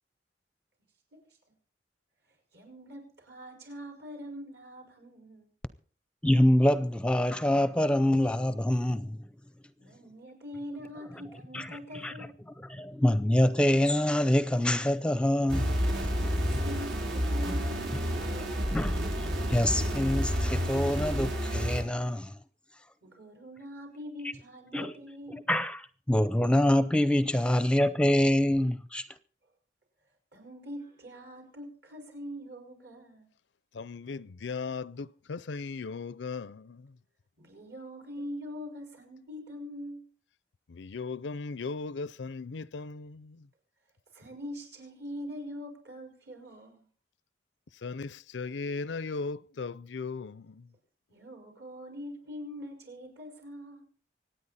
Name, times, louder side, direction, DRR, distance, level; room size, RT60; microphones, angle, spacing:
voice 1, 2.5-5.5 9.8-12.4 16.3-18.9 23.0-25.5 30.3-33.3 37.4-40.1 44.1-46.9 51.1-53.8, equal, 65° right, 5.4 m, -43 dB
voice 2, 6.2-9.3 11.5-12.1 12.6-16.2 16.5-16.6 18.7-19.0 19.5-22.4 24.7-24.9 25.3-29.1, left 1 dB, 5° left, 0.5 m, -26 dB
sound 1, 15.5-21.8, equal, 85° right, 4.7 m, -30 dB
voice 3, 33.8-36.8 40.7-43.4 47.8-50.5, left 4 dB, 85° left, 0.5 m, -37 dB
25.5 x 9.1 x 4.2 m
head